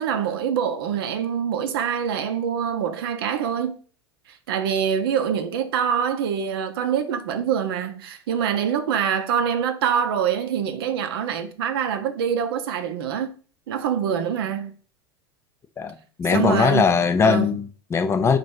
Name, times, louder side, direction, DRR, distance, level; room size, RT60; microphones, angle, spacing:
voice 1, 0.0-3.7 4.5-13.3 13.7-14.7 16.3-17.5, right 8 dB, 60° right, 0.7 m, -25 dB
voice 2, 15.8-18.4, left 6 dB, 20° left, 0.5 m, -20 dB
4.1 x 2.7 x 4.6 m
figure-of-eight pair, 85°, 14 cm